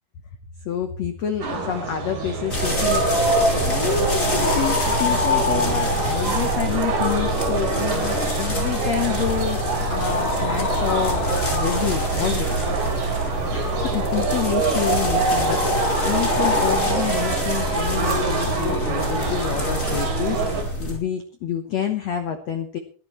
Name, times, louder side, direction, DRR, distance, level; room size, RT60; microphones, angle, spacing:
voice 1, 0.6-3.1 3.5-12.6 13.5-20.4 20.8-22.8, left 8 dB, 90° left, 7 dB, 1.4 m, -28 dB
sound 1, 1.4-20.6, right 4 dB, 55° right, 4.9 m, -27 dB
sound 2, 2.5-21.0, left 1 dB, 20° left, 3.3 m, -24 dB
21.5 x 12.5 x 3.1 m, 0.42 s
omnidirectional pair, 4.8 m